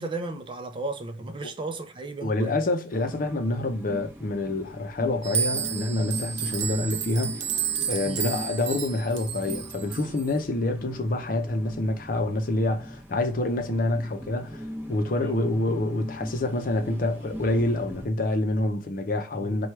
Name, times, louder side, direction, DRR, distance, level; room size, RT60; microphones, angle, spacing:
voice 1, 0.0-2.6 8.0-8.3 15.1-15.4 19.3-19.7, right 2 dB, 25° right, 0.5 m, -35 dB
voice 2, 2.2-7.4 7.9-19.7, left 2 dB, 50° left, 0.6 m, -27 dB
sound 1, 2.9-18.1, equal, 10° right, 0.9 m, -41 dB
sound 2, 5.2-10.3, right 8 dB, 80° right, 0.6 m, -31 dB
4.6 x 2.3 x 4.4 m
head